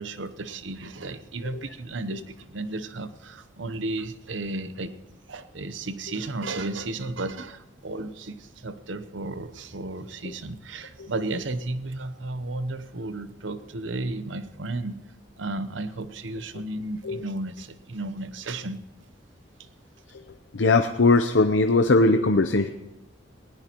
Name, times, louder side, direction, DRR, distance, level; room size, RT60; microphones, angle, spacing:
voice 1, 0.0-4.9 5.3-15.0 15.4-18.8, right 2 dB, 80° right, 11 dB, 0.9 m, -33 dB
voice 2, 20.5-22.7, left 3 dB, 70° left, 7 dB, 0.7 m, -20 dB
19.5 x 18.0 x 3.0 m, 1.0 s
head